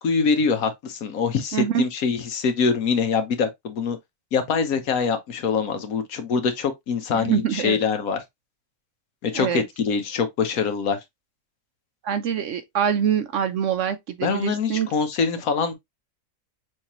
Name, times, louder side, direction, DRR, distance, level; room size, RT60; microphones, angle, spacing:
voice 1, 0.0-4.0 4.3-8.2 9.2-11.0 14.2-15.7, left 5 dB, 70° left, 1.3 m, -24 dB
voice 2, 1.5-1.8 7.1-7.8 9.3-9.6 12.0-14.9, right 8 dB, 65° right, 0.8 m, -24 dB
6.2 x 2.8 x 2.9 m
omnidirectional pair, 1.6 m